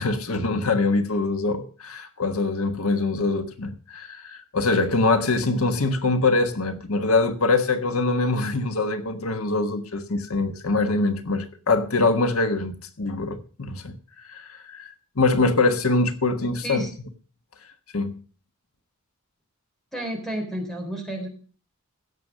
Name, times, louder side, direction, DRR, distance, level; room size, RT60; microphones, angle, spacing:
voice 1, 0.0-14.0 14.2-16.9 17.9-18.2, left 3 dB, 90° left, 1.4 m, -24 dB
voice 2, 19.9-21.3, right 1 dB, ahead, 3.7 m, -31 dB
16.5 x 7.1 x 6.3 m
head